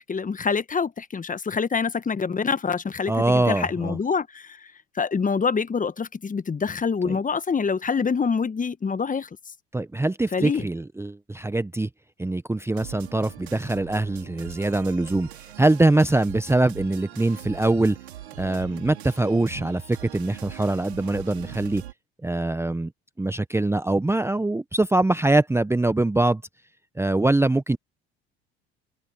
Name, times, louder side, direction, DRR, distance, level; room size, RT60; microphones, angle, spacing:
voice 1, 0.0-9.3 10.3-10.7, left 5 dB, 25° left, 1.3 m, -26 dB
voice 2, 3.1-4.0 7.0-7.2 9.7-11.9 12.2-15.3 15.6-18.0 18.4-21.8 22.2-22.9 23.2-26.4 27.0-27.8, right 2 dB, 10° right, 0.9 m, -23 dB
sound 1, 12.7-21.9, right 12 dB, 90° right, 5.7 m, -42 dB
hypercardioid pair, 70°, 32 cm